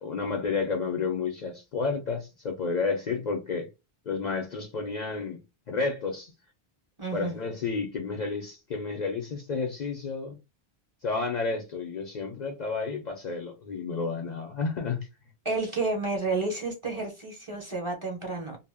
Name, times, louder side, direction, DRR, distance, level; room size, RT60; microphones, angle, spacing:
voice 1, 0.0-3.7 4.1-5.4 5.7-6.3 7.1-10.4 11.0-15.1, left 4 dB, 55° left, 0.6 m, -31 dB
voice 2, 7.0-7.3 15.4-18.6, right 3 dB, 35° right, 0.7 m, -30 dB
2.1 x 2.1 x 3.3 m
omnidirectional pair, 1.1 m